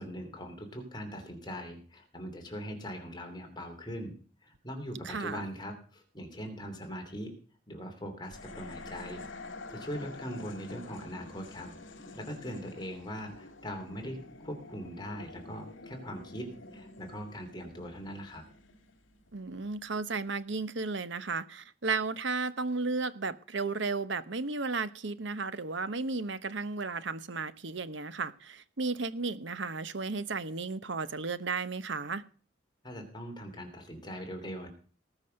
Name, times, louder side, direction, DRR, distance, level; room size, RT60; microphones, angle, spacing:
voice 1, 0.0-4.1 4.4-7.3 7.7-9.3 9.7-11.7 12.1-18.4 32.8-34.7, equal, 20° left, 3 dB, 2.9 m, -41 dB
voice 2, 5.0-5.5 19.3-32.2, right 4 dB, 65° right, 14 dB, 0.9 m, -34 dB
sound 1, 8.3-19.6, left 2 dB, 70° left, 2.1 m, -48 dB
19.0 x 6.3 x 6.4 m, 0.42 s
head